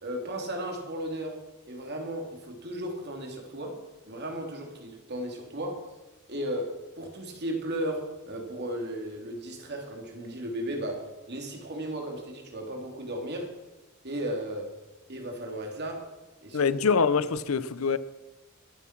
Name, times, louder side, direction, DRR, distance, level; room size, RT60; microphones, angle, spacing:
voice 1, 0.0-5.9 6.3-13.5 14.0-14.8 15.1-16.1 16.4-16.7, right 1 dB, 55° right, 2.8 m, -35 dB
voice 2, 16.5-18.0, left 5 dB, 85° left, 0.7 m, -24 dB
22.0 x 7.5 x 5.9 m
head